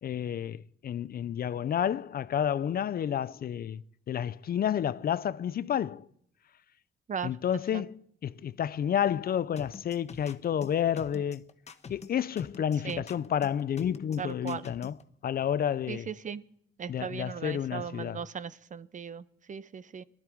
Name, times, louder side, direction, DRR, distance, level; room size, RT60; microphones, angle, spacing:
voice 1, 0.0-3.8 4.1-6.1 7.2-11.4 11.9-14.9 15.2-16.1 16.9-18.2, left 9 dB, 50° left, 0.5 m, -30 dB
sound 1, 9.6-15.0, left 5 dB, 35° left, 1.1 m, -46 dB
voice 2, 14.2-14.7 15.9-16.4 16.8-20.0, right 7 dB, 40° right, 0.7 m, -37 dB
19.5 x 12.5 x 4.6 m
cardioid pair, 90°, 20 cm